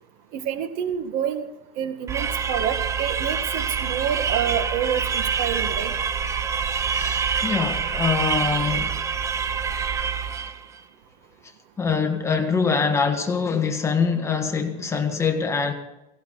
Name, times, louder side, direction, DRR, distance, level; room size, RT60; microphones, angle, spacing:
voice 1, 0.3-1.5 1.8-5.9, right 9 dB, 55° right, 1.8 m, -28 dB
sound 1, 2.1-10.7, right 6 dB, 15° right, 0.7 m, -26 dB
voice 2, 6.9-9.0 11.8-15.7, left 5 dB, 15° left, 1.6 m, -24 dB
17.5 x 17.5 x 4.0 m
supercardioid pair, 145°, 18 cm